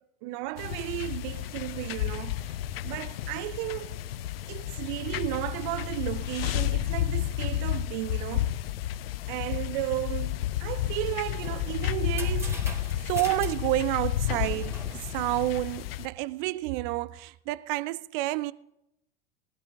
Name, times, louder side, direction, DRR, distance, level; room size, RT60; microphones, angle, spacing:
voice 1, 0.0-2.5 2.8-4.0 4.5-8.6 9.3-12.6 13.0-18.5, right 18 dB, 50° right, 0.6 m, -32 dB
sound 1, 0.6-16.1, left 12 dB, 65° left, 0.6 m, -31 dB
sound 2, 11.1-16.1, right 1 dB, 10° right, 2.7 m, -43 dB
19.5 x 13.0 x 2.4 m
figure-of-eight pair, 75°, 32 cm